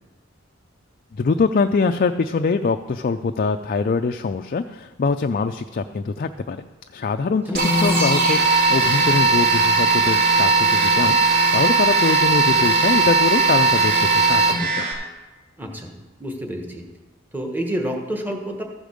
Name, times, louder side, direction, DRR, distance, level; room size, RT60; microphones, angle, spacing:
voice 1, 1.1-6.6 6.9-14.9, left 4 dB, 45° left, 7 dB, 0.4 m, -23 dB
sound 1, 7.5-14.9, right 3 dB, 50° right, 2.8 m, -18 dB
voice 2, 15.6-15.9 16.2-16.8 17.3-18.6, right 1 dB, 10° right, 2 dB, 1.3 m, -28 dB
14.5 x 5.1 x 6.3 m, 1.2 s
head